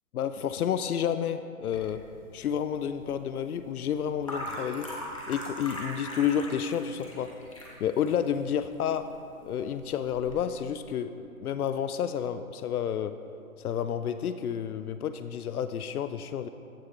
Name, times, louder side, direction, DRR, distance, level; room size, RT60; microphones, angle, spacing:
voice 1, 0.1-2.0 2.3-4.9 5.3-7.3 7.8-9.1 9.4-13.1 13.6-16.5, left 8 dB, 90° left, 11 dB, 0.5 m, -30 dB
sound 1, 1.7-10.4, equal, 25° left, 0.9 m, -42 dB
14.5 x 7.3 x 2.5 m, 2.5 s
hypercardioid pair, 180°, 43 cm